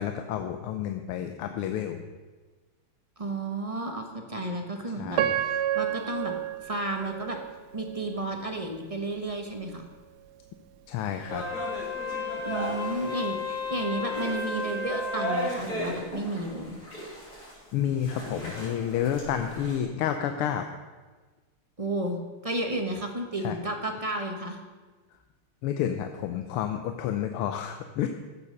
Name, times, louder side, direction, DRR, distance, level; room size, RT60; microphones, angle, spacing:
voice 1, 0.0-2.0 5.0-5.3 10.9-11.4 17.7-20.7 23.4-23.6 25.6-28.1, left 9 dB, 90° left, 6 dB, 1.7 m, -30 dB
voice 2, 3.2-6.3 6.6-7.4 7.7-9.9 12.4-16.8 21.8-24.6, right 2 dB, 25° right, 4 dB, 0.9 m, -32 dB
Piano, 5.2-8.2 8.7-8.8 9.5-9.7, right 11 dB, 90° right, 1.6 m, -30 dB
sound 1, 11.3-19.8, equal, 45° left, 4.9 m, -37 dB
Wind instrument woodwind instrument, 11.3-15.6, left 3 dB, 20° left, 2.9 m, -33 dB
15.0 x 7.0 x 6.6 m, 1.3 s
omnidirectional pair, 2.3 m